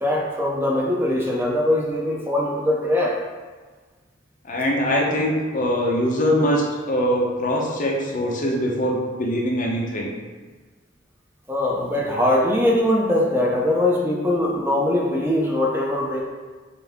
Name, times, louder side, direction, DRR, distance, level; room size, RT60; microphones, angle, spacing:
voice 1, 0.0-3.2 11.5-16.2, left 1 dB, 10° right, -3 dB, 0.4 m, -21 dB
voice 2, 4.4-10.1, equal, 40° left, -2 dB, 0.8 m, -22 dB
5.7 x 2.6 x 3.5 m, 1.4 s
head